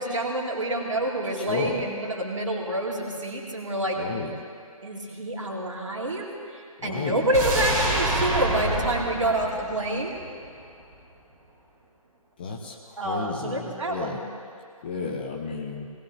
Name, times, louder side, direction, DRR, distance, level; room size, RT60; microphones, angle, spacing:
voice 1, 0.0-4.0 4.8-10.2 13.0-14.2, right 1 dB, 55° right, -1 dB, 2.5 m, -28 dB
voice 2, 1.4-1.8 4.0-4.3 6.8-7.3 12.4-14.2 14.8-15.9, left 4 dB, 15° left, 0 dB, 0.6 m, -32 dB
sound 1, 7.3-10.5 10.8-10.9, right 1 dB, 25° right, 2.8 m, -27 dB
19.0 x 18.5 x 3.1 m, 2.2 s
figure-of-eight pair, 150°, 19 cm